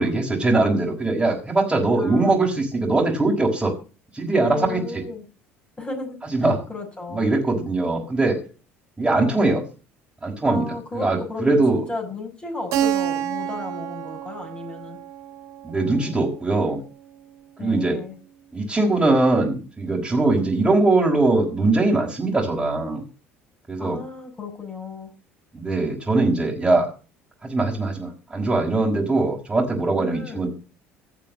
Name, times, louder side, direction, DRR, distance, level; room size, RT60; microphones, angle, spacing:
voice 1, 0.0-3.7 4.1-5.0 6.4-6.6 7.1-8.4 9.0-9.6 10.2-10.6 10.9-11.8 15.6-16.8 17.6-18.0 18.5-23.0 23.7-24.0 25.5-26.9 27.4-30.5, right 2 dB, 15° right, -4 dB, 5.4 m, -21 dB
voice 2, 2.0-2.6 4.5-5.2 5.8-7.3 9.1-9.6 10.4-15.0 17.6-18.1 23.8-25.1 30.0-30.5, left 3 dB, 15° left, 2 dB, 6.1 m, -34 dB
Keyboard (musical), 12.7-17.3, right 10 dB, 55° right, 1.3 m, -29 dB
17.0 x 6.9 x 7.7 m, 0.35 s
figure-of-eight pair, 60°, 7 cm